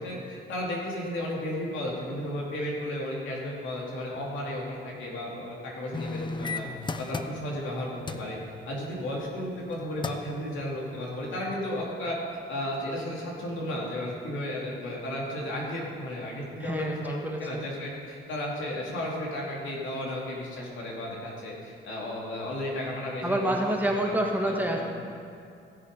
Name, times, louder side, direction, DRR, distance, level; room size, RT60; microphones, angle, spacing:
voice 1, 0.0-6.7 7.0-8.4 8.7-12.1 12.5-23.4 23.8-24.1 24.4-24.8, left 1 dB, 75° left, -3 dB, 2.8 m, -34 dB
sound 1, 5.9-7.7 8.1-8.3 9.6-9.7 10.0-10.4 10.9-11.0, left 3 dB, 25° left, 0.6 m, -34 dB
voice 2, 16.6-17.7 23.2-24.8, right 1 dB, 10° right, 0 dB, 1.4 m, -28 dB
16.5 x 6.5 x 5.3 m, 2.5 s
cardioid pair, 90°, 20 cm